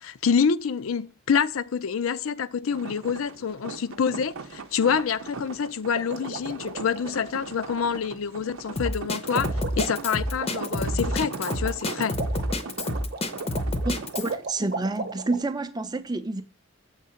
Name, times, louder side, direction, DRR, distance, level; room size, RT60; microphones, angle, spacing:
voice 1, 0.0-9.5 9.8-12.2, left 6 dB, 75° left, 0.5 m, -27 dB
sound 1, 2.7-14.4, right 4 dB, 80° right, 0.7 m, -39 dB
sound 2, 5.9-7.1 8.8-8.9 9.2-15.4, right 3 dB, 50° right, 0.8 m, -37 dB
Drum kit, 8.8-14.3, left 1 dB, 30° left, 0.6 m, -28 dB
voice 2, 13.8-16.4, right 3 dB, 20° right, 0.5 m, -29 dB
7.4 x 3.8 x 5.6 m
head